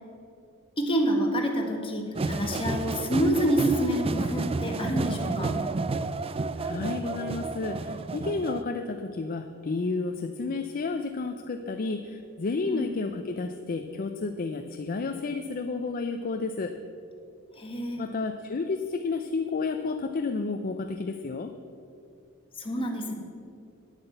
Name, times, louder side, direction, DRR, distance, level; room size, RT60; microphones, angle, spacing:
voice 1, 0.8-5.6 12.6-12.9 17.6-18.0 22.6-23.1, right 1 dB, 25° left, 1 dB, 1.7 m, -27 dB
sound 1, 2.1-8.6, right 3 dB, 25° right, 0.4 m, -31 dB
voice 2, 6.6-16.8 18.0-21.5, left 3 dB, 40° left, 7 dB, 0.5 m, -31 dB
9.8 x 8.2 x 7.8 m, 2.5 s
head